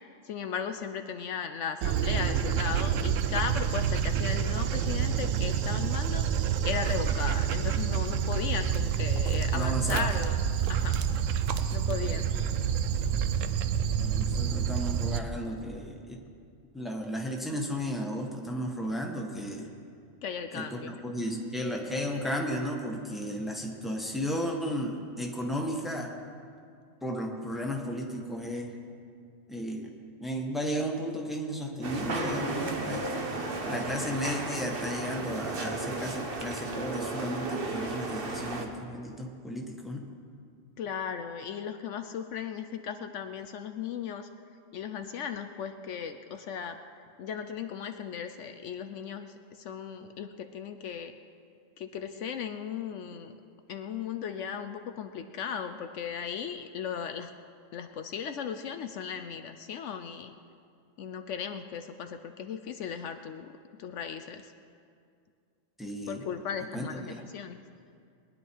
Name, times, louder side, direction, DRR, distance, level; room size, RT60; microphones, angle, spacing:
voice 1, 0.2-10.4 10.7-11.0 11.7-12.3 20.2-21.0 40.8-44.3 44.7-46.8 47.2-51.1 51.8-53.4 53.7-57.3 57.7-60.3 61.0-63.5 63.8-64.5 66.1-67.6, left 7 dB, 70° left, 7 dB, 0.9 m, -36 dB
Dog, 1.8-15.2, right 8 dB, 75° right, 1.0 m, -28 dB
voice 2, 9.5-10.1 14.0-16.2 16.7-19.7 20.5-26.1 27.0-28.7 29.5-29.9 30.2-33.1 33.7-40.1 65.8-66.3 66.7-67.2, equal, ahead, 0 dB, 1.3 m, -34 dB
sound 1, 31.8-38.7, right 2 dB, 45° right, 1.3 m, -34 dB
21.5 x 10.5 x 4.6 m, 2.3 s
omnidirectional pair, 1.3 m